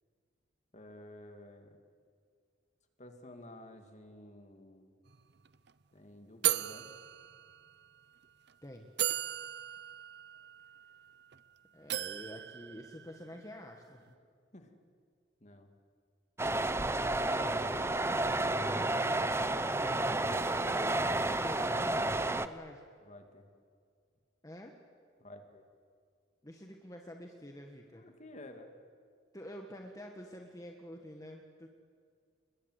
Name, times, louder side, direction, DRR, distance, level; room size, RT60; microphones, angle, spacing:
voice 1, 0.7-1.8 3.0-4.9 5.9-6.9 13.3-13.4 14.1-14.2 14.5-14.7 15.4-15.7 17.2-19.2 23.0-23.5 25.2-25.7 28.0-28.7, left 1 dB, 40° left, 5 dB, 2.5 m, -51 dB
sound 1, 5.1-5.2 5.4-5.7 6.4-7.9 8.5-8.6 9.0-11.4 11.9-13.5, right 12 dB, 60° right, 0.7 m, -37 dB
voice 2, 11.7-14.0 17.0-17.6 19.8-22.9 24.4-24.8 26.4-28.0 29.3-31.7, equal, 20° left, 2 dB, 1.5 m, -48 dB
sound 2, 16.4-22.5, right 2 dB, 15° right, 0.7 m, -31 dB
29.5 x 21.5 x 8.2 m, 2.1 s
head